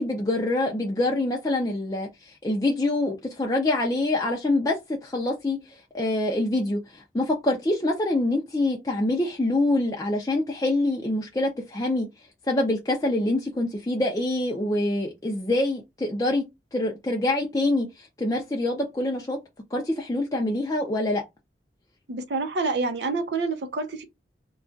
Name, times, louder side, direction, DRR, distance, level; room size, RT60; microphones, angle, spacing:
voice 1, 0.0-12.1 12.5-16.5 16.7-19.4 19.7-21.2, left 2 dB, 20° left, 0.4 m, -25 dB
voice 2, 22.1-24.0, right 3 dB, 75° right, 0.6 m, -27 dB
2.3 x 2.3 x 3.8 m
head